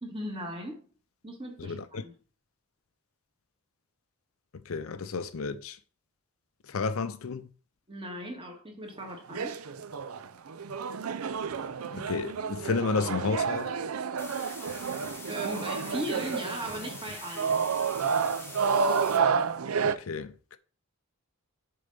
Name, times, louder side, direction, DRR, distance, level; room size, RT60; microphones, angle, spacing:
voice 1, 0.0-0.9 1.2-2.1 7.9-9.5 15.3-17.7, equal, 25° right, 1.7 m, -38 dB
voice 2, 1.6-2.0 4.7-5.8 6.7-7.5 11.9-13.7 19.8-20.6, left 4 dB, 75° left, 0.6 m, -32 dB
sound 1, 9.0-20.0, right 6 dB, 80° right, 0.5 m, -30 dB
sound 2, 14.2-19.2, left 3 dB, 10° left, 1.0 m, -45 dB
6.7 x 3.8 x 5.3 m
head